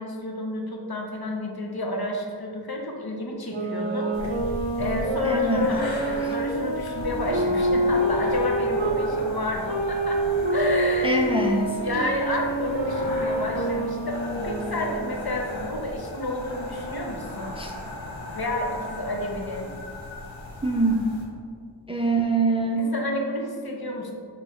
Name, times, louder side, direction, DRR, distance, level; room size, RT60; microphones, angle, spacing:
voice 1, 0.0-4.1 4.8-10.2 10.5-11.2 11.6-17.6 18.3-19.7 22.7-24.1, left 1 dB, 55° left, 1 dB, 0.7 m, -30 dB
sound 1, 3.5-9.0 9.7-15.2, right 1 dB, 75° right, 0.7 m, -27 dB
sound 2, 4.1-21.2, left 1 dB, 90° left, 0.8 m, -37 dB
voice 2, 5.2-5.6 11.0-11.7 17.6-17.7 20.6-21.0 21.9-22.9, right 3 dB, 15° right, 1 dB, 0.4 m, -23 dB
5.7 x 2.9 x 3.0 m, 2.2 s
wide cardioid pair, 45°, 45 cm